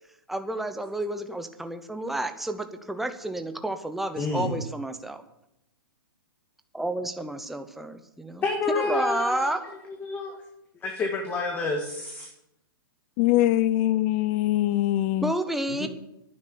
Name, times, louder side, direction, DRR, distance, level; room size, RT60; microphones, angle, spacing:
voice 1, 0.3-5.2 6.7-9.6 15.2-15.9, right 1 dB, ahead, 7 dB, 0.9 m, -31 dB
voice 2, 4.2-4.6 8.4-9.6 10.0-10.4 10.8-12.3 15.8-15.9, left 3 dB, 15° left, 3 dB, 1.6 m, -28 dB
voice 3, 13.2-15.3, left 14 dB, 35° left, 14 dB, 0.5 m, -23 dB
11.0 x 10.0 x 8.4 m, 0.84 s
hypercardioid pair, 150°, 12 cm